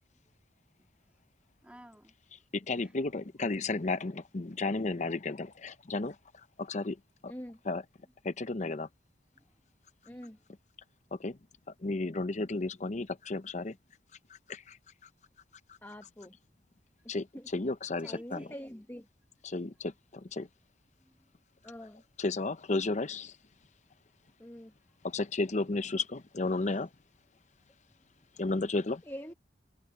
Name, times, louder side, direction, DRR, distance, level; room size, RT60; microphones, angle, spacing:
voice 1, 0.8-1.3 1.6-2.1 2.6-3.0 8.0-8.1 9.3-9.7 10.0-10.5 18.0-18.9 20.9-21.3 24.7-24.8 27.9-28.3, equal, 5° right, 2.9 m, -58 dB
voice 2, 2.5-6.1 6.6-7.0 7.2-7.3 7.7-7.8 8.2-8.9 11.2-11.4 11.8-13.7 14.5-14.8 17.1-17.3 17.5-18.4 19.4-20.5 22.2-23.3 25.0-26.9 28.4-29.0, left 3 dB, 40° left, 0.7 m, -33 dB
voice 3, 7.3-7.6 10.1-10.4 15.8-16.4 17.3-17.5 18.0-19.1 21.6-22.0 24.4-24.7 29.0-29.3, equal, 15° left, 1.3 m, -45 dB
head